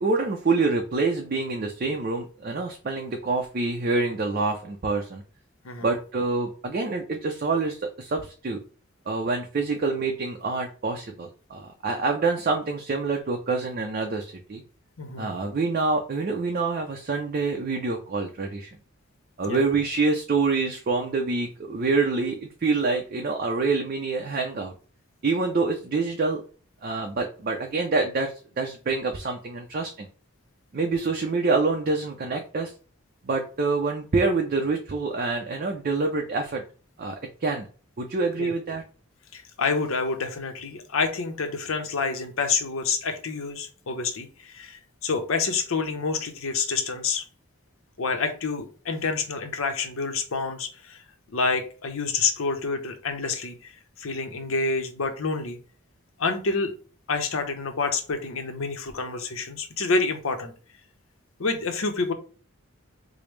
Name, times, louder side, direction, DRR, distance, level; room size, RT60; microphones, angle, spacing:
voice 1, 0.0-5.2 5.8-8.6 9.1-14.6 15.2-18.7 19.4-24.7 25.2-26.4 26.8-30.1 30.7-32.7 33.2-36.6 37.0-37.2 37.4-37.7 38.0-38.8, right 3 dB, 40° right, 3 dB, 0.4 m, -26 dB
voice 2, 15.0-15.3 19.5-19.6 38.4-38.5 39.3-47.2 48.0-51.0 51.3-53.7 54.0-55.6 56.2-56.7 57.1-60.5 61.4-62.1, left 4 dB, 75° left, 6 dB, 0.7 m, -28 dB
4.9 x 2.0 x 3.1 m, 0.39 s
head